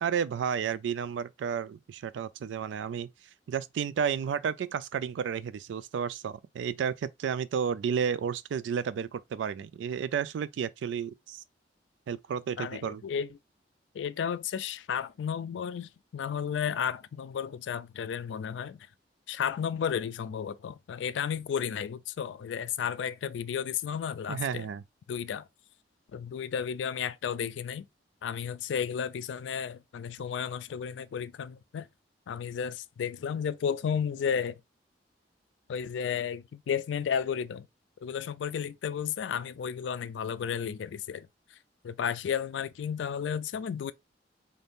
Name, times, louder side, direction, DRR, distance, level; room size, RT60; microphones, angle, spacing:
voice 1, 0.0-3.1 3.5-11.4 12.1-13.0 24.3-24.8, right 7 dB, 90° right, 0.3 m, -32 dB
voice 2, 12.6-13.3 13.9-18.9 19.3-24.7 25.1-25.5 26.1-27.9 28.2-31.9 32.3-34.6 35.7-37.7 38.0-41.3 41.8-43.9, left 7 dB, 90° left, 0.3 m, -33 dB
3.5 x 2.6 x 2.6 m
head